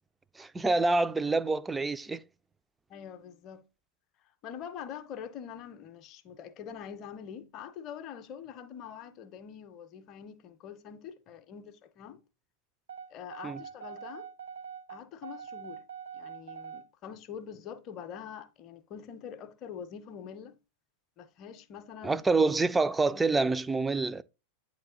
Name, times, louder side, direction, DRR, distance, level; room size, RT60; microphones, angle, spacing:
voice 1, 0.4-2.2 13.4-13.6 22.0-24.2, right 3 dB, 10° right, 0.3 m, -27 dB
voice 2, 2.9-3.6 4.4-12.2 13.1-14.3 14.9-15.8 16.1-20.6 21.2-22.2 23.1-23.2, left 8 dB, 35° left, 0.6 m, -44 dB
sound 1, 12.9-16.9, right 7 dB, 75° right, 1.0 m, -44 dB
8.7 x 3.2 x 3.7 m
figure-of-eight pair, 90°, 0 cm